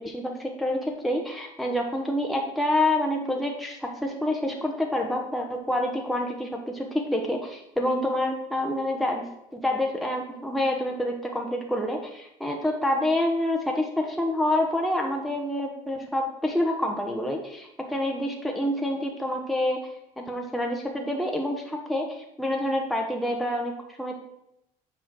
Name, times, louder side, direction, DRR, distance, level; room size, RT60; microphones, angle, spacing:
voice 1, 0.0-9.2 9.5-19.8 20.2-24.1, left 1 dB, ahead, 0 dB, 1.2 m, -27 dB
7.7 x 4.2 x 6.1 m, 0.84 s
supercardioid pair, 100°, 16 cm